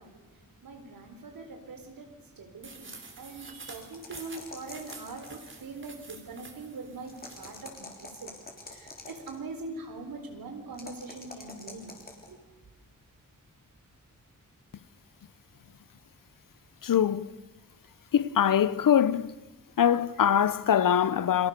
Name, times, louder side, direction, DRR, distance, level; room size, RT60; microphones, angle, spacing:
voice 1, 0.0-8.3 8.6-12.0 12.3-12.4, right 3 dB, 90° right, 4.2 m, -43 dB
sound 1, 2.6-7.6, right 3 dB, 35° right, 3.3 m, -48 dB
sound 2, 3.7-5.6 7.0-9.4 10.7-12.3, left 2 dB, 25° left, 3.5 m, -46 dB
voice 2, 16.8-17.3 18.1-19.3 19.8-21.5, left 9 dB, 75° left, 0.9 m, -23 dB
29.5 x 24.0 x 6.8 m
wide cardioid pair, 180°, 33 cm